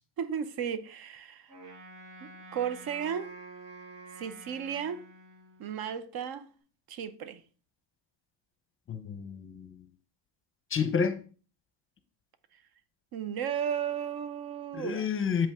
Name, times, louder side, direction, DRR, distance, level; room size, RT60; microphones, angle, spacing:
voice 1, 0.2-1.5 2.2-3.3 4.2-5.0 5.6-6.5 6.9-7.4 13.1-15.1, right 8 dB, 55° right, 0.8 m, -34 dB
Wind instrument woodwind instrument, 1.5-5.9, right 2 dB, 70° right, 3.8 m, -49 dB
voice 2, 8.9-9.7 10.7-11.2 14.8-15.5, left 6 dB, 30° left, 0.6 m, -29 dB
7.7 x 5.3 x 3.5 m
cardioid pair, 155°, 44 cm